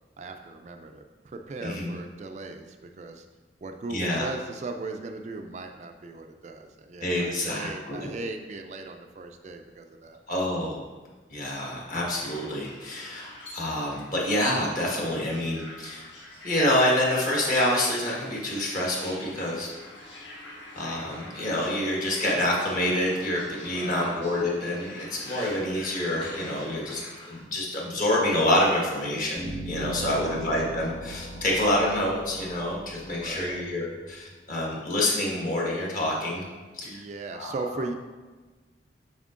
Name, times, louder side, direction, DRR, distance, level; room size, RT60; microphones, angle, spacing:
voice 1, 0.2-3.3 3.6-10.2 23.7-24.1 29.9-30.4 33.1-33.6 36.8-37.9, right 3 dB, 40° right, 5 dB, 0.3 m, -38 dB
voice 2, 1.6-1.9 3.9-4.3 7.0-8.1 10.3-10.8 11.3-16.1 16.4-19.7 20.7-36.4 36.7-37.0 37.3-37.6, left 1 dB, 45° left, -3 dB, 1.4 m, -27 dB
sound 1, 11.9-27.4, left 1 dB, 75° left, 1.6 m, -45 dB
sound 2, 29.3-34.6, right 1 dB, 30° left, 1.5 m, -39 dB
7.1 x 6.3 x 2.5 m, 1.3 s
head